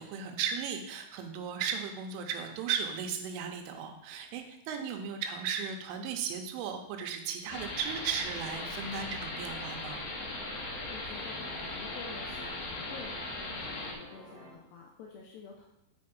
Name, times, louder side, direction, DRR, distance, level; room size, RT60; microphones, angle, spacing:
voice 1, 0.0-10.1, right 7 dB, 85° right, 5 dB, 3.2 m, -36 dB
sound 1, 7.5-13.9, left 2 dB, 65° left, 2.8 m, -39 dB
sound 2, 9.2-14.5, right 1 dB, 30° left, 1.4 m, -50 dB
voice 2, 10.9-15.7, left 5 dB, 85° left, -1 dB, 2.4 m, -49 dB
8.7 x 5.2 x 5.1 m, 0.83 s
omnidirectional pair, 5.8 m